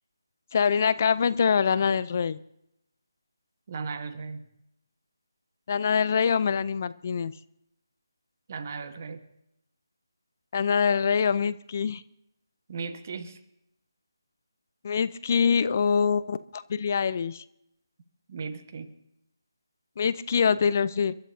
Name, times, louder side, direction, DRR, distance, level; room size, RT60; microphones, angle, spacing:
voice 1, 0.5-2.4 5.7-7.3 10.5-12.0 14.8-17.4 20.0-21.1, left 6 dB, 35° left, 16 dB, 0.5 m, -24 dB
voice 2, 3.7-4.4 8.5-9.2 12.7-13.4 18.3-18.9, right 5 dB, 35° right, 9 dB, 1.3 m, -36 dB
30.0 x 11.0 x 2.7 m, 0.82 s
figure-of-eight pair, 155°, 2 cm